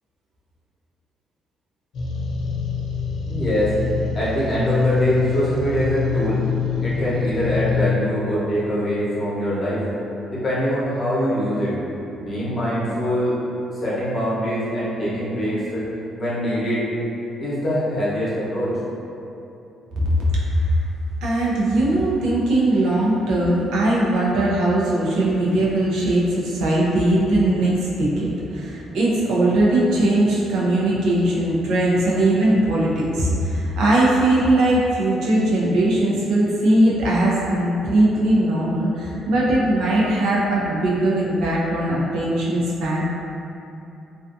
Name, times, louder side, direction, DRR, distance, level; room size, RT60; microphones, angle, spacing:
sound 1, 1.9-7.9, left 5 dB, 65° left, 0.4 m, -25 dB
voice 1, 3.3-3.7 4.1-6.4 6.8-9.8 10.3-11.7 12.1-13.4 13.7-15.8 16.2-16.8 17.4-18.7, equal, 30° left, -9 dB, 0.8 m, -23 dB
voice 2, 19.9-20.8 21.2-43.0, right 1 dB, 85° right, -6 dB, 0.5 m, -20 dB
2.4 x 2.3 x 2.5 m, 2.8 s
cardioid pair, 130°, 0 cm